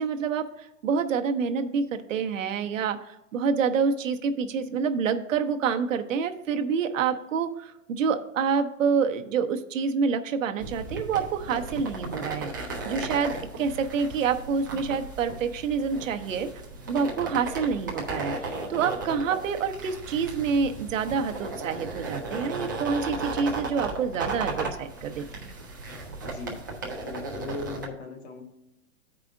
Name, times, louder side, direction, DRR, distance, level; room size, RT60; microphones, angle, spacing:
voice 1, 0.0-16.5 16.9-25.5, right 6 dB, 75° right, 6 dB, 0.9 m, -27 dB
sound 1, 10.6-27.9, right 3 dB, 15° right, 0.3 m, -35 dB
voice 2, 26.2-26.6 27.0-28.4, left 3 dB, 55° left, 3 dB, 1.4 m, -38 dB
14.0 x 4.9 x 2.5 m, 0.90 s
hypercardioid pair, 165°, 39 cm